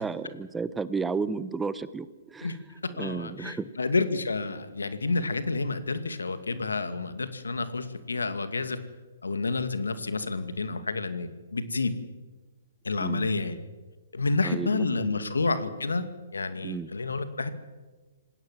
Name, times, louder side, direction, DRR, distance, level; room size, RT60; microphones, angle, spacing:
voice 1, 0.0-2.6 2.9-3.7 13.0-13.3 14.4-15.3 16.6-16.9, right 4 dB, 10° right, 15 dB, 0.9 m, -33 dB
voice 2, 3.0-8.8 9.2-11.9 12.8-13.6 14.1-17.5, left 3 dB, 90° left, 10 dB, 2.3 m, -29 dB
27.0 x 19.5 x 7.5 m, 1.3 s
hypercardioid pair, 135°, 0 cm